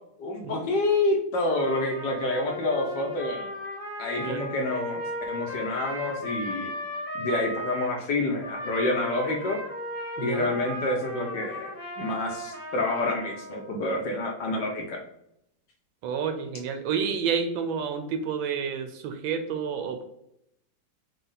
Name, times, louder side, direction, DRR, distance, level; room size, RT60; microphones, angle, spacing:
voice 1, 0.2-3.5 4.0-6.7 7.1-9.6 10.2-11.7 12.0-15.0, left 2 dB, 65° left, 1 dB, 1.5 m, -28 dB
Trumpet, 1.5-7.9 8.4-13.7, equal, 35° left, 1.1 m, -36 dB
voice 2, 10.2-10.5 16.0-20.0, right 6 dB, 80° right, 7 dB, 1.4 m, -29 dB
5.1 x 2.4 x 3.9 m, 0.77 s
omnidirectional pair, 2.2 m